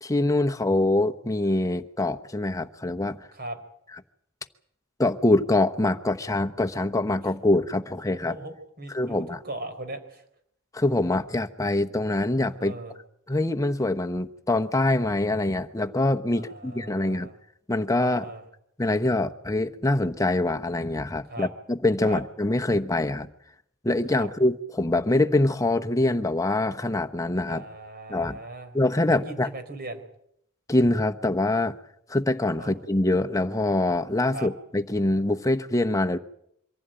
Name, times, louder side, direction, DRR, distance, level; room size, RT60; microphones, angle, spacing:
voice 1, 0.0-3.3 5.0-8.3 8.9-9.4 10.7-12.7 13.3-17.3 17.7-18.3 18.8-23.3 23.8-27.6 28.1-28.4 28.7-29.5 30.7-31.8 32.1-36.2, left 2 dB, 15° left, 1.0 m, -24 dB
voice 2, 8.1-10.2 12.6-13.0 16.3-17.3 18.0-18.4 21.3-21.5 22.0-22.2 24.1-24.3 27.5-28.8 29.1-30.0 32.6-32.7 34.3-34.5, right 2 dB, 50° right, 4.2 m, -39 dB
24.5 x 15.0 x 9.0 m
head